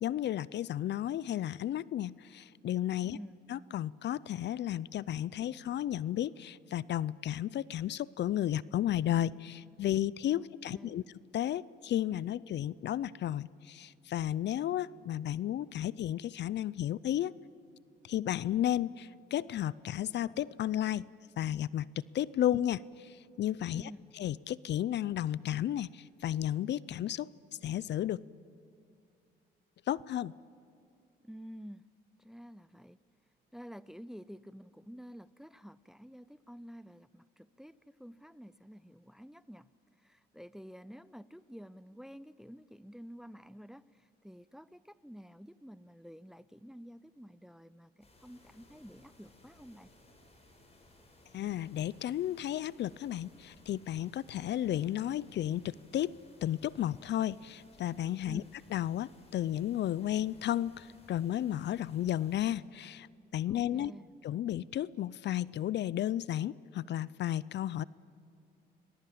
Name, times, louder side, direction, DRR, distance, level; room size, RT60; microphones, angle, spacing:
voice 1, 0.0-3.2 3.5-11.0 11.3-17.3 18.0-21.1 21.4-23.9 24.2-27.3 27.6-28.2 29.9-30.3 51.3-56.1 56.4-58.4 58.7-63.1 63.3-63.9 64.2-67.8, left 12 dB, 60° left, 21 dB, 0.5 m, -33 dB
voice 2, 3.0-3.4 10.3-11.0 23.7-24.0 31.2-31.9 32.2-33.0 33.5-39.7 40.0-49.9 58.2-58.5 63.5-64.1, equal, ahead, 17 dB, 0.6 m, -50 dB
sound 1, 48.0-62.6, left 1 dB, 30° left, 6.8 m, -61 dB
26.0 x 20.5 x 8.6 m, 2.4 s
cardioid pair, 90°, 20 cm